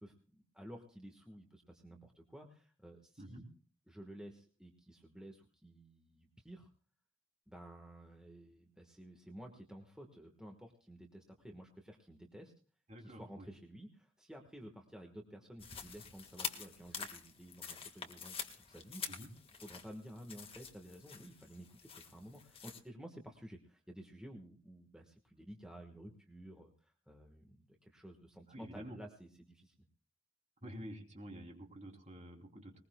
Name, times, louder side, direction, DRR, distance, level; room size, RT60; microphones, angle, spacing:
voice 1, 0.0-3.4 3.9-6.7 7.5-12.5 13.0-19.0 19.5-29.7, equal, 5° right, 2 dB, 1.3 m, -53 dB
voice 2, 12.9-13.5 19.1-19.3 28.5-29.0 30.6-32.8, equal, 35° right, 2 dB, 3.1 m, -49 dB
sound 1, 15.6-22.8, left 6 dB, 25° left, 1.6 m, -47 dB
20.5 x 20.5 x 2.2 m, 0.41 s
head